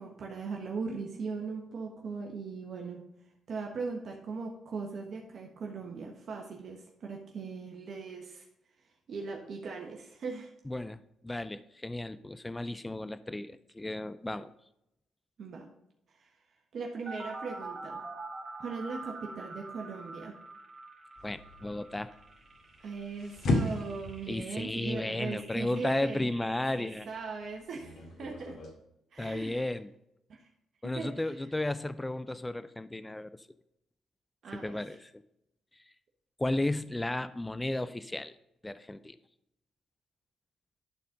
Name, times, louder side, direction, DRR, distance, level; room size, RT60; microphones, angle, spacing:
voice 1, 0.0-3.0 3.5-8.5 9.1-10.5 15.4-15.7 16.2-16.3 16.7-18.0 18.6-20.4 22.8-26.3 26.8-28.6 29.1-29.7 30.3-30.5 30.8-31.4 34.4-34.8, right 4 dB, 55° right, 1 dB, 1.5 m, -39 dB
voice 2, 10.7-14.5 21.2-22.1 24.3-27.1 29.2-29.9 30.8-33.5 34.5-35.1 36.4-38.3 38.6-39.2, left 1 dB, 10° left, 14 dB, 0.5 m, -34 dB
sound 1, 17.1-27.0, right 3 dB, 30° right, 2.2 m, -46 dB
sound 2, 21.2-28.7, left 2 dB, 65° left, 2.3 m, -37 dB
12.0 x 4.3 x 5.2 m, 0.83 s
cardioid pair, 90°, 0 cm